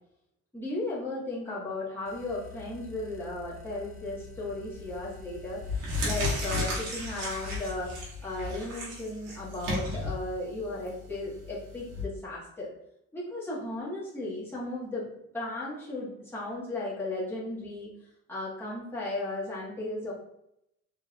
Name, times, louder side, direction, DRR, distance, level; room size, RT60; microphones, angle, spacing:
voice 1, 0.5-7.9 8.2-12.7 13.1-15.0 15.3-17.9 18.3-20.1, left 2 dB, 5° left, -7 dB, 1.5 m, -35 dB
sound 1, 2.1-8.1, left 4 dB, 45° left, 0.8 m, -48 dB
sound 2, 4.8-5.1 5.5-12.0, left 2 dB, 90° right, 1.4 m, -34 dB
4.0 x 3.4 x 2.4 m, 0.79 s
cardioid pair, 90°, 30 cm